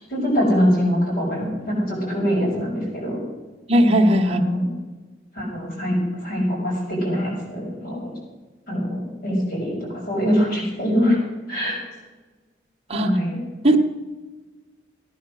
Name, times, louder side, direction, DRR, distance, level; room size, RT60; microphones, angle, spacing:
voice 1, 0.1-3.2 4.3-4.7 5.3-8.1 8.7-11.2 11.5-11.8 13.0-13.4, equal, 50° left, -3 dB, 6.4 m, -23 dB
voice 2, 3.7-4.4 12.9-13.1 13.6-13.8, equal, 30° right, 2 dB, 1.4 m, -17 dB
17.0 x 10.5 x 6.4 m, 1.3 s
head